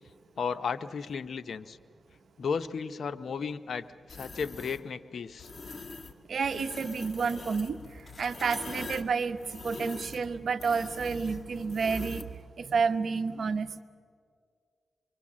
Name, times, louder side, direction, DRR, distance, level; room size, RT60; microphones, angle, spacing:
voice 1, 0.4-1.8 2.4-5.5, left 6 dB, 70° left, 12 dB, 0.7 m, -34 dB
sound 1, 4.1-4.8 5.4-6.1 6.4-12.4, left 3 dB, 40° left, 1.6 m, -44 dB
voice 2, 6.3-13.7, right 5 dB, 70° right, 10 dB, 0.9 m, -30 dB
25.5 x 23.0 x 7.4 m, 2.3 s
cardioid pair, 65°, 0 cm